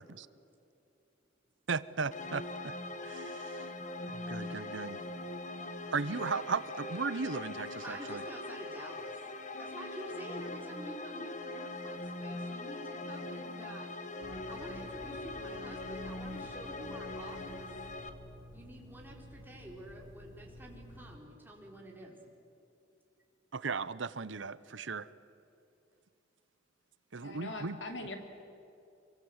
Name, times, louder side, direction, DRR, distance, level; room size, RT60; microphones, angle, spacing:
voice 1, 1.7-2.7 3.0-3.7 4.1-5.0 5.9-8.2 23.5-25.1 27.1-27.8, right 4 dB, 75° right, 17 dB, 0.8 m, -36 dB
sound 1, 2.1-18.1, left 2 dB, 40° left, 1.7 m, -42 dB
voice 2, 7.8-9.2 9.6-13.9 14.5-17.7 18.5-22.2, right 1 dB, 10° right, -1 dB, 4.3 m, -48 dB
sound 2, 14.2-21.2, equal, 25° left, 3.3 m, -52 dB
voice 3, 27.2-28.2, left 2 dB, 75° left, 5 dB, 3.0 m, -41 dB
26.0 x 23.5 x 8.1 m, 2.6 s
head